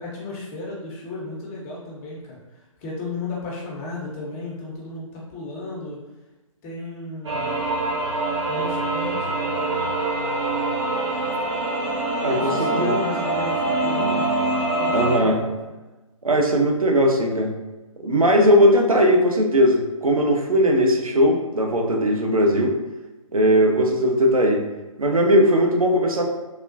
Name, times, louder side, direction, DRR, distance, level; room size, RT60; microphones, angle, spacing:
voice 1, 0.0-6.0 6.6-7.7 8.5-10.0 12.2-15.5, left 2 dB, 25° left, -4 dB, 0.8 m, -34 dB
sound 1, 7.2-15.2, right 2 dB, 60° right, 0.8 m, -24 dB
voice 2, 12.2-12.9 14.9-15.4 16.2-17.5 18.0-22.7 23.3-24.6 25.0-26.2, equal, 90° right, 2 dB, 0.6 m, -18 dB
3.4 x 2.3 x 2.6 m, 1.1 s
figure-of-eight pair, 130°, 18 cm